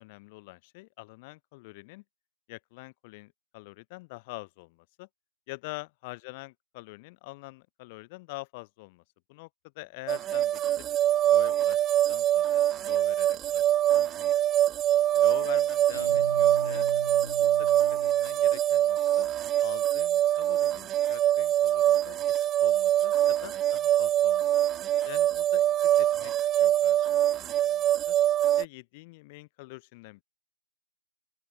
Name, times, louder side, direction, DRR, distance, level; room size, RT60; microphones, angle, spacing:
voice 1, 0.0-2.0 2.5-5.1 5.5-9.0 9.3-9.5 9.7-10.9 11.2-11.8 12.1-13.6 13.9-14.4 15.1-16.9 17.4-19.3 19.6-24.5 25.0-26.3 26.6-28.1 28.6-30.2, left 25 dB, 25° left, 6.4 m, -45 dB
sound 1, 10.1-28.6, right 12 dB, 15° right, 0.5 m, -24 dB
sound 2, 15.9-18.5, left 1 dB, 90° left, 4.7 m, -40 dB
open air
figure-of-eight pair, 140°, 0 cm